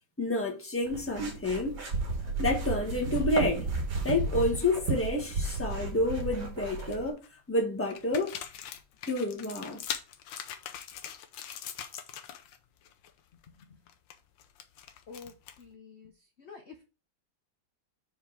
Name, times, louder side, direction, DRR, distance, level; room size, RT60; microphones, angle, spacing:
voice 1, 0.2-1.8 2.4-3.7 4.0-7.2 7.5-8.4 9.1-9.8, left 2 dB, 10° left, 1.3 m, -29 dB
sound 1, 0.8-7.1, right 3 dB, 60° right, 2.1 m, -33 dB
sound 2, 5.9-6.2 6.6-7.3 7.9-12.6 12.8-13.1 13.4-15.7, left 9 dB, 80° left, 1.5 m, -42 dB
voice 2, 15.1-16.1 16.4-16.8, left 5 dB, 50° left, 0.8 m, -48 dB
5.0 x 4.8 x 5.7 m
omnidirectional pair, 2.0 m